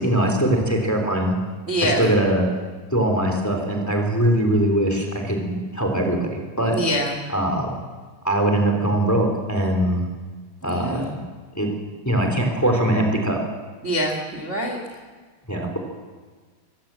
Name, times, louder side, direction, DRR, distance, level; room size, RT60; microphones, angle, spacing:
voice 1, 0.0-1.3 1.8-2.4 2.9-6.8 7.3-7.7 8.2-10.0 10.6-11.2 11.5-11.7 12.0-13.4 15.5-15.8, right 1 dB, 5° left, 2 dB, 2.5 m, -21 dB
voice 2, 1.7-2.1 6.7-7.2 10.6-11.0 13.8-14.8, equal, 30° right, 1 dB, 1.4 m, -24 dB
24.0 x 16.5 x 7.6 m, 1.4 s
omnidirectional pair, 5.5 m